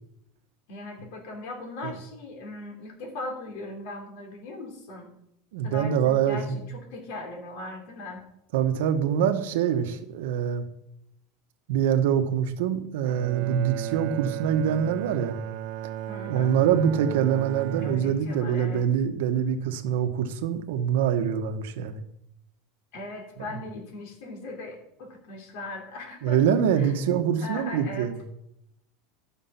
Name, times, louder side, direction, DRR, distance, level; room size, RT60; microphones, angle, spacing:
voice 1, 0.7-5.1 5.6-8.2 16.1-16.6 17.8-18.8 22.9-26.4 26.7-26.9 27.4-28.1, left 2 dB, 55° left, 2 dB, 3.3 m, -39 dB
voice 2, 5.5-6.6 8.5-10.7 11.7-15.4 16.3-22.0 26.2-28.2, right 8 dB, 70° right, 8 dB, 1.2 m, -25 dB
Bowed string instrument, 13.0-18.5, right 12 dB, 50° right, 0.5 m, -35 dB
12.5 x 6.4 x 5.7 m, 0.78 s
supercardioid pair, 170°, 0 cm